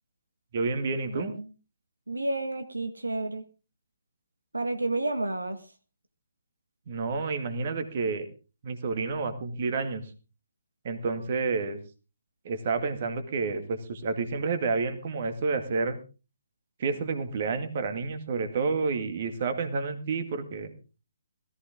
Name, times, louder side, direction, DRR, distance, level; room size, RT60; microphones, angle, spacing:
voice 1, 0.5-1.3 6.9-8.3 8.6-10.0 10.8-11.8 12.4-16.0 16.8-20.7, right 4 dB, 40° right, 8 dB, 2.1 m, -29 dB
voice 2, 1.1-1.5 2.1-3.4 4.5-5.7, right 2 dB, 75° right, 8 dB, 1.6 m, -31 dB
17.5 x 14.5 x 3.7 m, 0.34 s
figure-of-eight pair, 140°, 0 cm